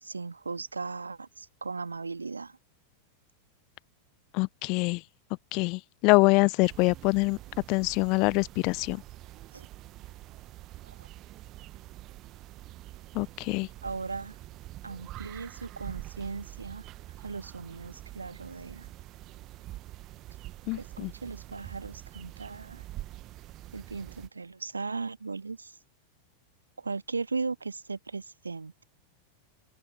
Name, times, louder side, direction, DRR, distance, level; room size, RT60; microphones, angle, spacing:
voice 1, 0.0-2.6 9.5-9.7 10.8-11.1 13.8-14.4 14.8-16.8 17.2-18.9 20.8-22.9 23.7-25.8 26.8-28.7, right 4 dB, 80° right, 1.8 m, -37 dB
voice 2, 4.3-5.0 5.5-7.4 7.7-9.0 13.1-13.7 20.7-21.1, left 28 dB, 45° left, 0.7 m, -25 dB
sound 1, 6.6-24.3, right 16 dB, 35° right, 1.2 m, -46 dB
open air
figure-of-eight pair, 90°, 0 cm